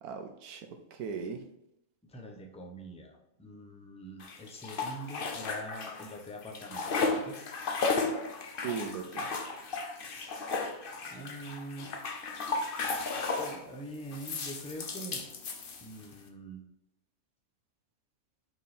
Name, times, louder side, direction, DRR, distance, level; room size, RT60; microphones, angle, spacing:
voice 1, 0.0-1.4 8.6-9.3, right 6 dB, 90° right, 5 dB, 1.2 m, -38 dB
voice 2, 2.1-7.4 10.0-10.4 11.0-11.9 12.8-15.2 15.8-16.6, right 1 dB, 5° left, 1 dB, 0.8 m, -44 dB
sound 1, 4.2-6.2 6.4-13.6 14.1-16.1, left 4 dB, 45° left, 0.9 m, -34 dB
7.2 x 4.3 x 4.3 m, 0.84 s
omnidirectional pair, 1.5 m